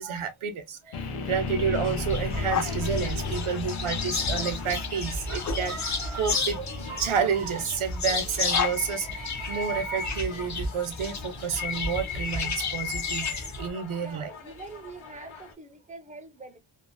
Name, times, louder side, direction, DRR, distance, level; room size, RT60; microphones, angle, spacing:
voice 1, 0.0-14.3, right 6 dB, 75° right, 0.7 m, -30 dB
sound 1, 0.9-12.9, left 4 dB, 90° left, 0.7 m, -36 dB
sound 2, 1.7-15.5, left 7 dB, 70° left, 1.0 m, -40 dB
sound 3, 2.1-13.7, left 4 dB, 35° left, 0.5 m, -32 dB
voice 2, 14.0-16.6, right 3 dB, 15° right, 0.4 m, -44 dB
2.7 x 2.0 x 2.5 m
wide cardioid pair, 130°, 50 cm